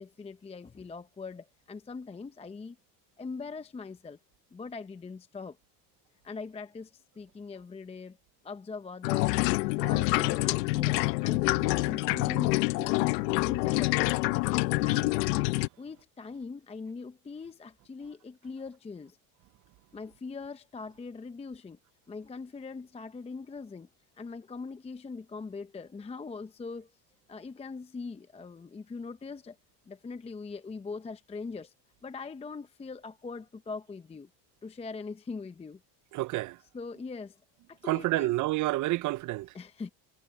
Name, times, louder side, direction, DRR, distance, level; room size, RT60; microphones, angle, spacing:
voice 1, 0.0-2.8 3.2-4.2 4.5-5.6 6.2-8.2 8.4-9.4 9.8-14.2 14.8-15.2 15.8-19.2 19.9-21.8 22.1-23.9 24.2-26.9 27.3-29.6 29.9-31.7 32.0-34.3 34.6-35.8 36.7-37.4 37.7-38.4 39.5-39.9, left 4 dB, 15° left, 0.6 m, -41 dB
sound 1, 9.0-15.7, left 22 dB, 90° left, 1.0 m, -27 dB
voice 2, 36.1-36.6 37.9-39.5, right 18 dB, 40° right, 0.5 m, -29 dB
supercardioid pair, 110°, 48 cm